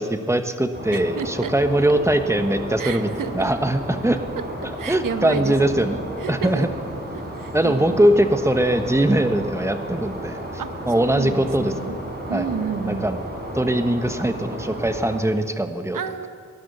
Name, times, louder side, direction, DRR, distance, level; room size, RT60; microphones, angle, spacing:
voice 1, 0.0-4.2 4.9-6.0 6.3-6.7 7.5-10.4 10.9-11.7 12.3-12.4 12.8-13.2 13.5-16.0, right 1 dB, 10° right, 8 dB, 1.1 m, -21 dB
sound 1, 0.7-15.2, right 1 dB, 30° right, 4.5 m, -33 dB
voice 2, 0.9-1.5 2.8-3.5 4.8-6.7 7.4-8.0 10.6-12.0 12.3-13.1 15.9-16.3, right 6 dB, 90° right, 9 dB, 1.0 m, -31 dB
18.5 x 11.5 x 6.7 m, 2.1 s
wide cardioid pair, 85°, 31 cm